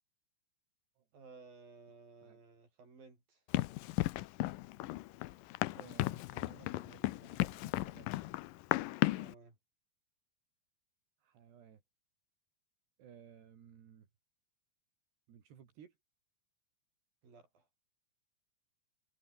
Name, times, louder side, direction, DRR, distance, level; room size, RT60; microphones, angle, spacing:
voice 1, 1.1-3.4 9.1-9.6 17.2-17.6, right 4 dB, 60° right, 9.8 m, -57 dB
Run, 3.5-9.3, left 17 dB, 85° left, 2.0 m, -35 dB
voice 2, 5.7-8.3 11.2-11.8 13.0-14.1 15.3-16.0, right 8 dB, 80° right, 5.3 m, -58 dB
omnidirectional pair, 4.7 m